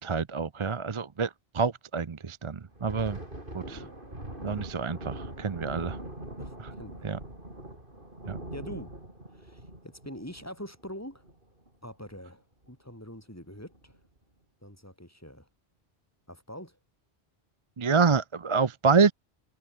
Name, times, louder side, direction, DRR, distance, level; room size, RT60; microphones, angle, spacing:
voice 1, 0.0-3.2 3.5-3.9 4.4-6.0 6.6-6.7 7.0-7.2 8.3-8.4 17.8-19.1, right 5 dB, 35° right, 0.6 m, -27 dB
Thunder, 2.6-11.7 12.0-12.2 12.6-12.9 13.5-14.0, right 1 dB, 50° right, 7.0 m, -42 dB
voice 2, 6.4-7.1 8.5-9.0 9.3-11.2 11.8-14.0 14.6-15.5 16.3-16.8, equal, 15° left, 5.6 m, -44 dB
omnidirectional pair, 1.1 m